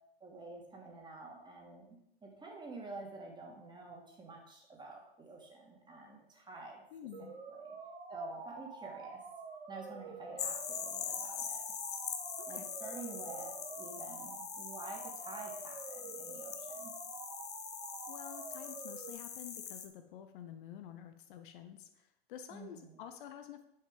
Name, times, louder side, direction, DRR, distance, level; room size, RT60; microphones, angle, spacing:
voice 1, 0.2-6.8 7.5-7.7 8.1-9.2 9.7-11.6 12.5-16.9 22.5-23.0, right 3 dB, 15° right, 0 dB, 2.9 m, -49 dB
voice 2, 6.9-7.3 12.5-12.7 18.1-21.9 22.3-23.6, left 10 dB, 55° left, 8 dB, 1.0 m, -49 dB
sound 1, 7.1-19.1, right 5 dB, 80° right, 1.6 m, -48 dB
sound 2, 10.4-19.9, left 8 dB, 35° left, 1.3 m, -43 dB
10.0 x 5.9 x 5.2 m, 0.80 s
hypercardioid pair, 100°, 30 cm